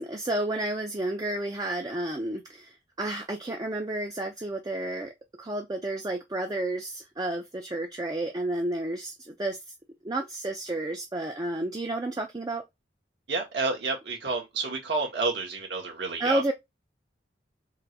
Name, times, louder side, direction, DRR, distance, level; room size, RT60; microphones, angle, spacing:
voice 1, 0.0-5.1 5.4-9.6 10.0-12.6 16.2-16.5, right 1 dB, 20° right, 0.5 m, -31 dB
voice 2, 13.3-16.5, right 3 dB, 75° right, 1.7 m, -30 dB
3.7 x 2.6 x 4.6 m
head